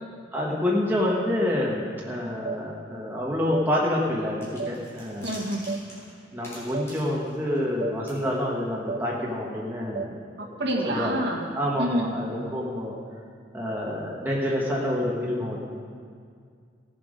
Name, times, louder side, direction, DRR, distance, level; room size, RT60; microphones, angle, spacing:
voice 1, 0.3-5.4 6.3-10.5 10.9-11.3 11.5-12.9 13.5-15.6, left 1 dB, 10° right, -4 dB, 1.3 m, -27 dB
sound 1, 2.4-2.6 3.5-3.7 4.6-4.7 5.7-5.8 6.7-6.9 7.8-8.0 8.9-9.0 9.9-10.1, right 5 dB, 40° right, 0.3 m, -32 dB
sound 2, 4.4-7.8 8.1-8.2, equal, 15° left, 3.8 m, -45 dB
voice 2, 5.2-5.7 10.4-11.5 11.8-12.1, right 1 dB, 60° right, -2 dB, 2.0 m, -27 dB
16.5 x 7.7 x 5.1 m, 2.2 s
head